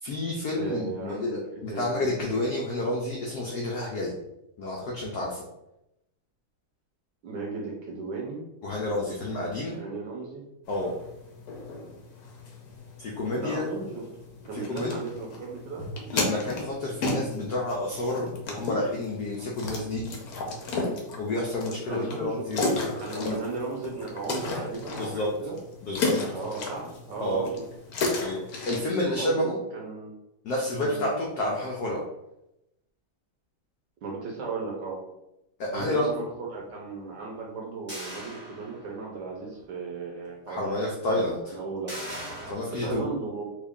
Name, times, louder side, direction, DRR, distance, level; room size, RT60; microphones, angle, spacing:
voice 1, 0.0-4.1 4.6-5.5 8.6-9.8 10.7-11.0 13.0-13.6 14.5-15.0 16.1-20.0 21.2-23.4 25.0-25.3 25.8-26.1 27.2-27.4 28.2-29.6 30.4-32.0 35.6-36.2 40.5-41.5 42.5-43.0, left 1 dB, 90° left, -2 dB, 0.8 m, -30 dB
voice 2, 0.5-2.1 7.2-8.4 9.7-10.5 13.4-14.0 14.5-15.8 21.9-25.6 26.3-27.5 29.0-30.1 30.8-31.0 34.0-35.0 35.7-40.8 41.0-42.0 42.8-43.4, right 4 dB, 70° right, -2 dB, 1.1 m, -36 dB
sound 1, 10.6-28.8, left 2 dB, 70° left, 0.9 m, -34 dB
sound 2, 37.9-39.1 39.6-39.7 41.9-42.5, equal, 5° right, 0.9 m, -39 dB
3.5 x 2.4 x 3.5 m, 0.88 s
omnidirectional pair, 2.4 m